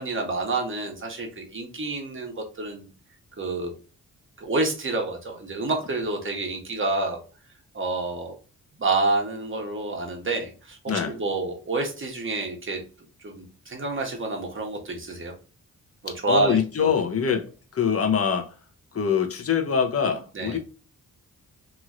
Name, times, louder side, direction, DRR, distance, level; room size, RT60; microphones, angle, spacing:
voice 1, 0.0-2.9 3.4-3.7 4.4-7.2 7.7-8.4 8.8-12.8 13.2-15.3 16.0-16.9 17.3-17.4 20.3-20.6, right 3 dB, 35° right, 1.2 m, -28 dB
voice 2, 16.1-17.4 17.7-18.5 18.9-20.6, left 6 dB, 40° left, 0.8 m, -24 dB
3.0 x 2.8 x 2.4 m
cardioid pair, 75°, 34 cm